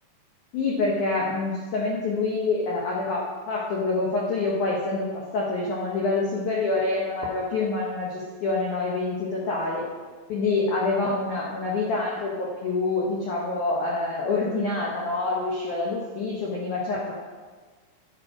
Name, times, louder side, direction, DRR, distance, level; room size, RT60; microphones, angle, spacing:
voice 1, 0.5-5.1 5.3-9.8 10.3-17.1, left 3 dB, 80° left, -4 dB, 1.7 m, -26 dB
9.2 x 5.2 x 4.8 m, 1.5 s
omnidirectional pair, 5.0 m